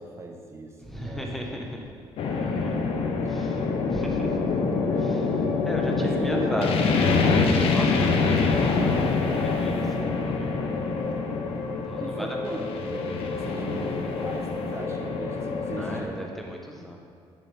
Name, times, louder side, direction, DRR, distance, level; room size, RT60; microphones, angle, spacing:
voice 1, 0.0-1.3 2.7-3.6 5.9-6.8 12.0-16.3 16.8-16.9, right 2 dB, 25° right, 2 dB, 1.2 m, -37 dB
voice 2, 0.8-1.9 2.3-2.8 3.3-4.6 4.9-10.7 11.8-12.6 15.8-17.0, equal, ahead, 0 dB, 1.3 m, -36 dB
sound 1, 2.2-16.0, left 4 dB, 65° left, 0.9 m, -25 dB
10.0 x 7.6 x 3.6 m, 2.3 s
cardioid pair, 110°, 11 cm